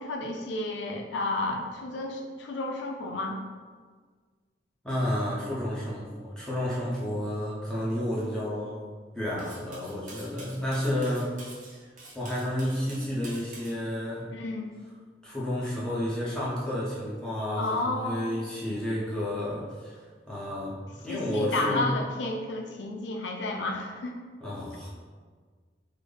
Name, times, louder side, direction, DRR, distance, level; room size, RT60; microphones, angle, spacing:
voice 1, 0.0-3.4 14.3-14.7 17.6-18.3 21.1-24.2, left 2 dB, 90° left, 2 dB, 0.5 m, -31 dB
voice 2, 4.8-8.8 9.1-11.3 11.8-14.3 15.2-21.9 24.4-24.9, left 1 dB, 5° left, -8 dB, 0.7 m, -31 dB
Cutlery silverware, 9.4-13.8, right 2 dB, 45° right, 0.6 m, -47 dB
3.8 x 2.0 x 3.3 m, 1.5 s
head